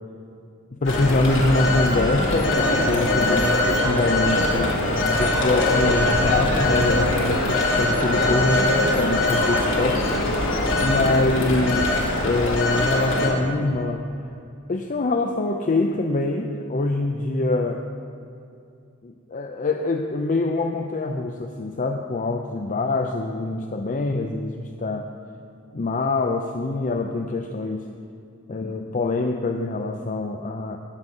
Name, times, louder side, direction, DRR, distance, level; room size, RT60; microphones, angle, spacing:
voice 1, 0.7-4.8 5.2-11.9 12.2-14.0 14.7-17.8 19.0-25.1 25.7-27.9 28.5-30.8, left 2 dB, 40° left, 4 dB, 0.6 m, -25 dB
Telephone, 0.9-13.3, left 1 dB, 65° left, 2.0 m, -22 dB
19.0 x 7.7 x 5.4 m, 2.5 s
head